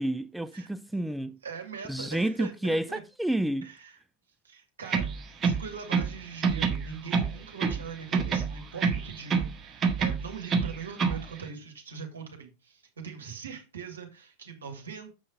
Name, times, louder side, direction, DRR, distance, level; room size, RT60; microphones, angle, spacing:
voice 1, 0.0-1.4 1.9-3.7, right 1 dB, 5° right, 0.3 m, -30 dB
voice 2, 1.4-3.0 3.6-4.0 4.4-5.0 5.4-15.1, right 6 dB, 70° right, 2.4 m, -41 dB
sound 1, 4.8-6.2 6.4-7.9 8.1-9.5 9.8-11.2, right 5 dB, 25° right, 1.5 m, -27 dB
7.3 x 5.5 x 5.1 m
figure-of-eight pair, 90°, 0 cm